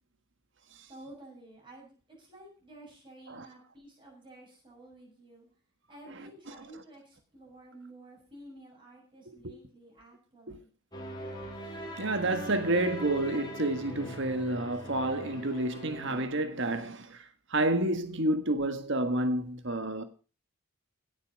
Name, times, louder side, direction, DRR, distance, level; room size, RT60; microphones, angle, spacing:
voice 1, 0.9-5.5 5.9-10.7, right 1 dB, 25° right, 7.3 m, -52 dB
sound 1, 10.9-16.3, right 1 dB, 20° left, 3.2 m, -42 dB
voice 2, 12.0-20.0, right 1 dB, 55° right, 1.5 m, -30 dB
17.0 x 8.3 x 6.4 m
head